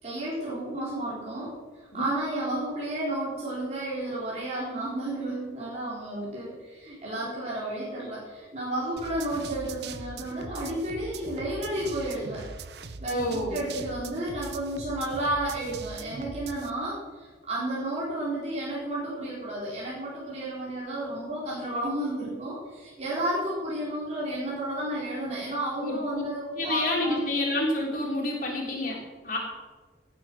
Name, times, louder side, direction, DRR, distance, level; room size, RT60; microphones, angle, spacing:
voice 1, 0.0-12.5 12.7-27.2, right 1 dB, 35° right, -7 dB, 4.0 m, -32 dB
sound 1, 9.0-16.7, right 4 dB, 65° right, 0.7 m, -41 dB
voice 2, 13.1-13.6 25.8-26.2 26.6-29.4, left 1 dB, 45° left, -2 dB, 3.4 m, -29 dB
18.5 x 8.5 x 6.2 m, 1.4 s
head